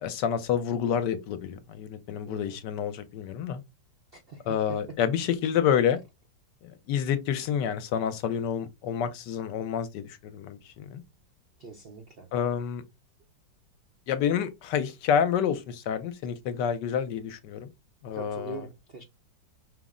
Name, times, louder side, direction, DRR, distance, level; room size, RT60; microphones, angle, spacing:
voice 1, 0.0-3.6 4.5-6.0 6.6-11.0 12.3-12.8 14.1-17.7 18.0-18.7, left 8 dB, 75° left, 1.2 m, -28 dB
voice 2, 2.3-2.6 4.1-4.4 11.6-12.3 18.1-19.0, right 2 dB, 75° right, 0.5 m, -43 dB
5.4 x 2.0 x 3.6 m
omnidirectional pair, 2.0 m